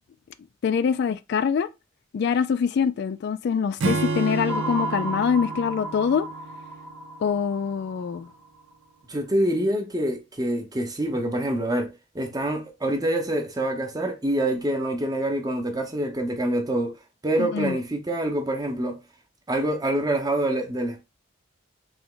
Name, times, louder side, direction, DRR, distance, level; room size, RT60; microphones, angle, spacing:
voice 1, 0.6-1.7 2.1-6.3 7.2-8.3 17.4-17.8, left 6 dB, 55° left, 0.3 m, -24 dB
Acoustic guitar / Strum, 3.8-7.3, right 3 dB, 80° right, 0.7 m, -30 dB
sound 1, 4.5-8.7, right 1 dB, 10° left, 0.8 m, -34 dB
voice 2, 9.1-17.0 17.2-19.0 19.5-21.0, right 1 dB, 20° right, 0.8 m, -26 dB
3.3 x 3.0 x 3.7 m
head